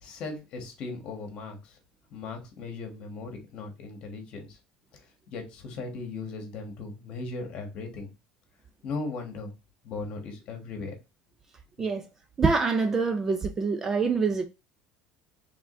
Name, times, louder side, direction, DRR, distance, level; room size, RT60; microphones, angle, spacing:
voice 1, 0.0-1.8 2.1-4.6 5.3-8.1 8.8-9.5 9.8-10.9, left 3 dB, 40° left, 1.4 m, -37 dB
voice 2, 12.4-14.5, right 4 dB, 15° right, 0.4 m, -25 dB
4.9 x 3.4 x 2.5 m
cardioid pair, 170°, 3 cm